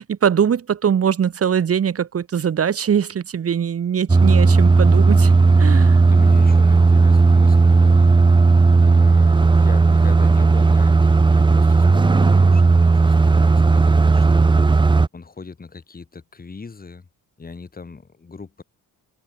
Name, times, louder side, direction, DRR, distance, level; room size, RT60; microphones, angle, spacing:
voice 1, 0.0-5.3 5.6-6.0, right 8 dB, 40° right, 1.8 m, -21 dB
sound 1, 4.1-15.1, right 3 dB, 15° right, 0.6 m, -14 dB
voice 2, 6.1-8.3 8.8-14.5 15.1-17.0 17.4-18.6, left 4 dB, 25° left, 6.5 m, -39 dB
open air
cardioid pair, 155°, 37 cm